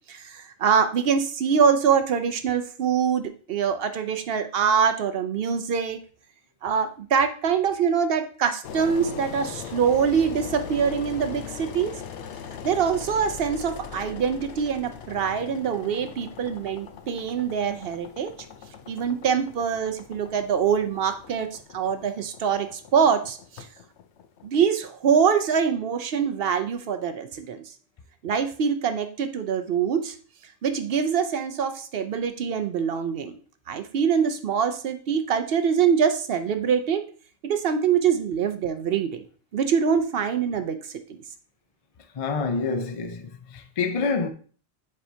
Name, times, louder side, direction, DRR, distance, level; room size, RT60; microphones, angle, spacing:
voice 1, 0.1-6.0 6.6-12.0 12.6-18.3 18.9-23.7 24.4-27.6 28.2-30.1 30.6-33.3 33.7-37.0 37.4-39.2 39.5-41.2, right 7 dB, 65° right, 0.8 m, -24 dB
Engine, 8.6-25.5, left 7 dB, 85° left, 0.9 m, -40 dB
voice 2, 42.1-44.3, left 4 dB, 40° left, 0.5 m, -27 dB
7.5 x 4.7 x 2.7 m
omnidirectional pair, 1.1 m